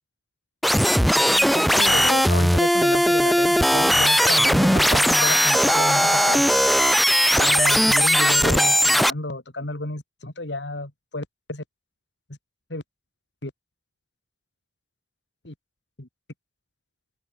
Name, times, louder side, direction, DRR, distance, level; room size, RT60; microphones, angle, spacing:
sound 1, 0.6-9.1, equal, ahead, 0.5 m, -18 dB
voice 1, 1.4-6.6 7.3-11.6 12.7-12.8 13.4-13.5 15.4-15.5 16.0-16.1, left 2 dB, 85° left, 2.9 m, -31 dB
open air
head